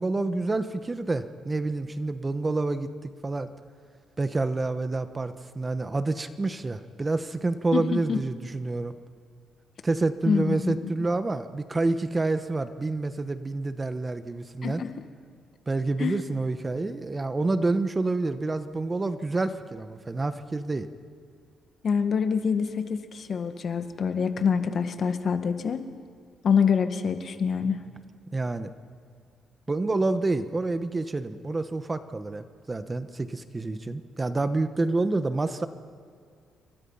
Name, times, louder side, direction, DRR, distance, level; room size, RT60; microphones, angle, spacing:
voice 1, 0.0-3.5 4.2-8.9 9.8-14.8 15.7-20.9 28.3-28.7 29.7-35.7, right 2 dB, 25° right, 11 dB, 1.2 m, -28 dB
voice 2, 7.7-8.2 10.3-10.7 14.6-14.9 16.0-16.1 21.8-25.8 26.4-27.8, left 6 dB, 50° left, 8 dB, 1.7 m, -26 dB
28.0 x 24.0 x 5.7 m, 2.1 s
cardioid pair, 90°, 0 cm